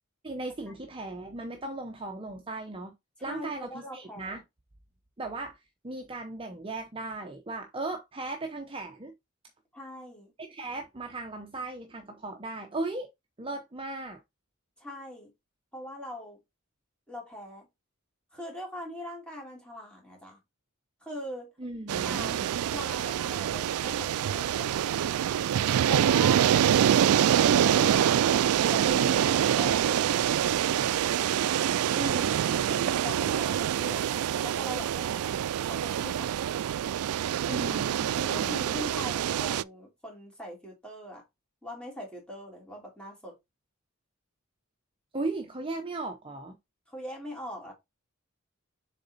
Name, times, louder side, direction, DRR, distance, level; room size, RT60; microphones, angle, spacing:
voice 1, 0.2-2.9 3.2-4.4 5.2-9.1 10.4-13.1 13.4-14.2 21.6-22.5 31.9-32.5 37.5-38.5 45.1-46.6, right 2 dB, 25° right, 0.8 m, -37 dB
voice 2, 3.2-4.4 9.7-10.3 14.8-15.3 15.7-16.4 17.1-17.7 18.3-20.4 21.0-21.5 22.0-22.3 22.7-24.9 25.9-26.4 27.4-28.4 28.7-30.6 32.6-34.1 34.4-35.4 35.7-36.3 38.2-41.2 41.6-43.3 46.9-47.7, equal, 5° left, 3.0 m, -41 dB
sound 1, 21.9-39.6, right 9 dB, 90° right, 0.3 m, -25 dB
7.0 x 4.0 x 4.1 m
head